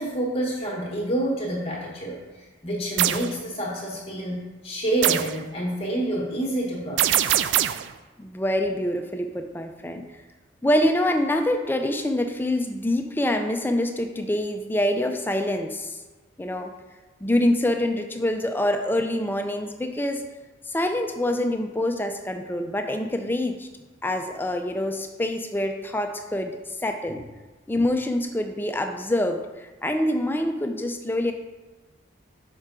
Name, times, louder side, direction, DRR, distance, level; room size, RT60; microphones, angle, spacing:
voice 1, 0.0-2.2 2.6-7.3, right 1 dB, 30° left, -3 dB, 1.1 m, -28 dB
sound 1, 3.0-3.3 5.0-5.4 7.0-7.9, right 11 dB, 65° right, 0.3 m, -22 dB
voice 2, 8.2-10.0 10.6-16.0 16.4-16.7 17.2-20.2 20.7-23.7 24.0-27.2 27.7-31.3, left 1 dB, 10° left, 5 dB, 0.4 m, -25 dB
6.1 x 5.4 x 3.7 m, 1.3 s
head